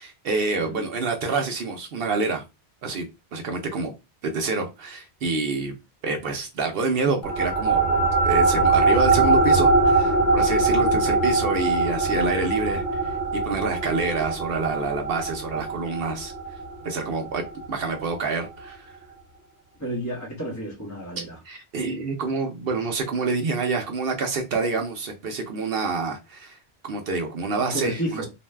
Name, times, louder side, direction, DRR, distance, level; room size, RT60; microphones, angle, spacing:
voice 1, 0.0-2.4 2.8-3.1 3.3-3.9 4.2-5.7 6.0-16.3 16.8-18.9 21.5-26.6 26.8-28.2, right 3 dB, 65° right, 0.8 m, -27 dB
voice 2, 0.6-0.9 19.8-21.4 27.6-28.3, right 1 dB, 15° left, 0.9 m, -31 dB
sound 1, 7.2-18.0, right 3 dB, 50° left, 0.9 m, -22 dB
2.6 x 2.2 x 3.2 m
omnidirectional pair, 1.1 m